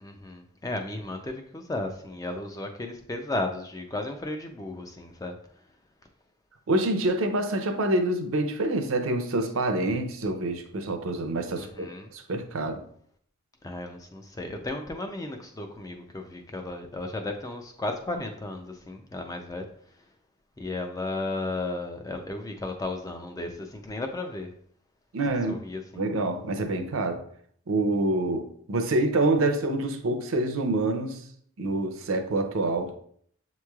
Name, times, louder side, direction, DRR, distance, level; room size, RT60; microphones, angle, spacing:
voice 1, 0.0-5.3 11.6-12.1 13.6-19.7 20.6-24.5 25.5-26.1, left 2 dB, 15° left, 5 dB, 0.3 m, -34 dB
voice 2, 6.7-12.8 25.1-25.6 25.9-27.2 27.7-31.2 31.6-32.9, right 2 dB, 70° right, 6 dB, 0.5 m, -26 dB
7.1 x 3.0 x 2.3 m, 0.62 s
head